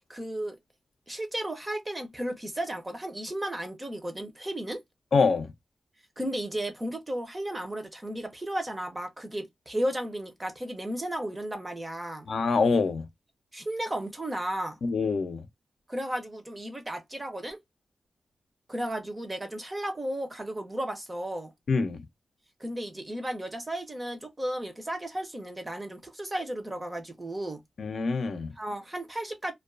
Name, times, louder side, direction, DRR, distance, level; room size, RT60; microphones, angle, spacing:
voice 1, 0.1-0.6 1.1-4.8 6.2-12.3 13.5-14.8 15.9-17.6 18.7-21.5 22.6-27.6 28.6-29.5, right 1 dB, 20° right, 0.6 m, -34 dB
voice 2, 5.1-5.5 12.3-13.0 14.8-15.4 21.7-22.0 27.8-28.5, left 4 dB, 65° left, 0.5 m, -25 dB
2.3 x 2.2 x 2.4 m
wide cardioid pair, 140°, 0 cm